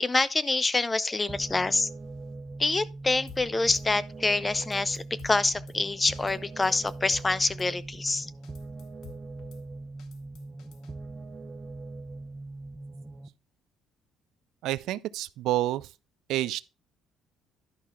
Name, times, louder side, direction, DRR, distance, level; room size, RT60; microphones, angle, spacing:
voice 1, 0.0-1.9 2.6-8.3, left 3 dB, 20° left, 0.5 m, -26 dB
sound 1, 1.3-13.3, right 3 dB, 20° right, 0.7 m, -41 dB
Drum kit / Snare drum, 3.3-3.9 4.2-4.3 4.6-5.8 6.2-6.4 6.6-7.7 8.1-8.2 8.4-9.6 10.0-10.9, left 7 dB, 75° left, 1.0 m, -51 dB
voice 2, 14.6-15.9 16.3-16.6, right 14 dB, 75° right, 0.4 m, -28 dB
11.0 x 5.6 x 3.6 m
cardioid pair, 115°, 0 cm